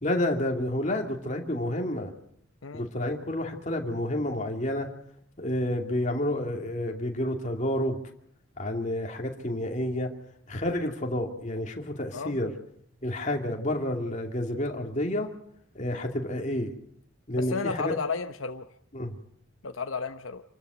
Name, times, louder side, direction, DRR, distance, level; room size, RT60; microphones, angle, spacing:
voice 1, 0.0-2.1 2.7-4.9 5.4-8.0 8.6-10.1 10.5-12.5 13.0-15.3 15.7-16.7 17.3-17.9 18.9-19.2, left 1 dB, 35° left, 2 dB, 2.7 m, -29 dB
voice 2, 17.3-18.7 19.6-20.4, left 4 dB, 75° left, 7 dB, 1.0 m, -33 dB
27.5 x 13.5 x 8.3 m, 0.68 s
head